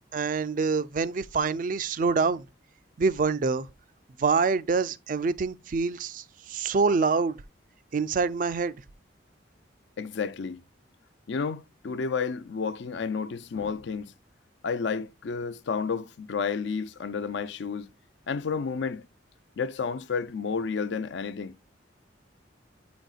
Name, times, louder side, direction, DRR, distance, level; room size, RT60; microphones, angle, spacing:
voice 1, 0.0-2.4 3.0-3.7 4.2-7.4 7.9-8.7, right 4 dB, 45° right, 0.3 m, -26 dB
voice 2, 10.0-10.6 11.3-14.1 14.6-17.9 18.3-19.1 19.6-21.5, left 5 dB, 65° left, 0.4 m, -31 dB
8.2 x 5.1 x 2.4 m
head